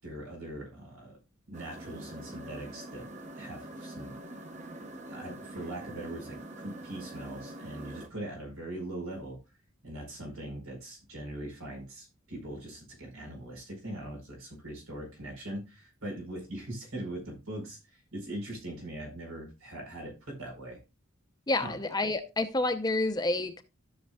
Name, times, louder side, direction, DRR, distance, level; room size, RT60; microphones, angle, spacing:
voice 1, 0.0-1.2 1.5-3.1 3.3-4.1 5.1-9.4 9.8-20.8 21.6-21.7, right 1 dB, 85° right, 4.8 m, -41 dB
sound 1, 1.5-8.1, right 1 dB, 35° right, 0.9 m, -44 dB
voice 2, 21.5-23.6, left 2 dB, 20° left, 0.6 m, -29 dB
13.5 x 6.6 x 2.3 m
head